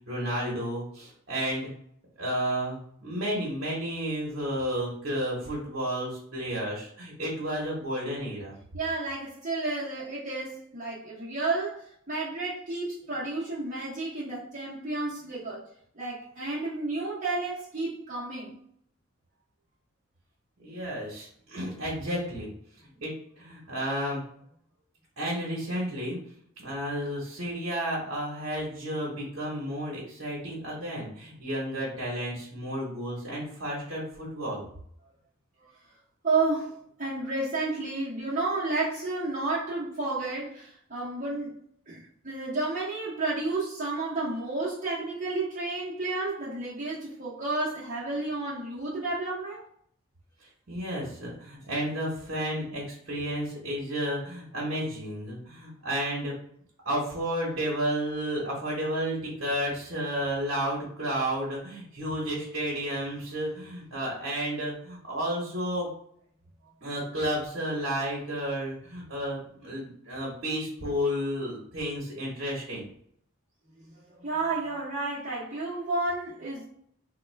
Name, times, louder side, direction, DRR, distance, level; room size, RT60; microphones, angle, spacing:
voice 1, 0.1-1.7 2.2-8.5 20.6-22.5 22.8-24.2 25.2-26.2 26.6-34.6 50.7-56.3 56.8-65.9 66.8-72.9, equal, 60° right, -4 dB, 1.1 m, -32 dB
voice 2, 8.7-15.6 15.9-18.6 35.6-35.7 36.2-41.6 41.9-49.6 73.8-76.6, right 3 dB, 35° right, -9 dB, 0.9 m, -31 dB
3.6 x 2.2 x 3.3 m, 0.65 s
head